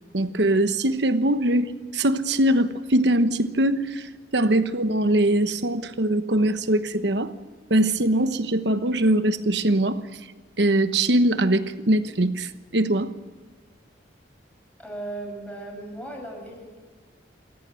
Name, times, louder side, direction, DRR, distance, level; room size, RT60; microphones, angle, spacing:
voice 1, 0.1-4.1 4.3-7.3 7.7-10.0 10.6-13.1, right 1 dB, 70° right, 10 dB, 1.2 m, -22 dB
voice 2, 14.8-16.9, right 2 dB, 5° left, 0 dB, 6.5 m, -37 dB
28.0 x 14.0 x 7.8 m, 1.5 s
head